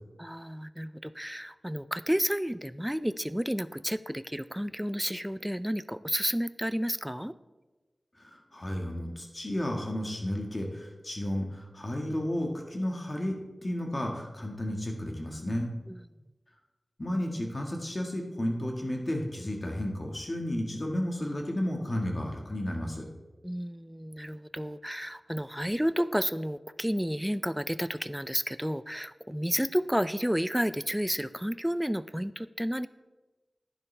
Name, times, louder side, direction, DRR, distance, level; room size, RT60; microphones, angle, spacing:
voice 1, 0.2-7.3 15.9-16.0 23.4-32.9, equal, 5° right, 14 dB, 0.3 m, -31 dB
voice 2, 8.1-13.4 13.6-15.7 17.0-23.1, left 1 dB, 35° left, 1 dB, 1.5 m, -32 dB
11.0 x 9.9 x 3.3 m, 1.2 s
wide cardioid pair, 90°, 0 cm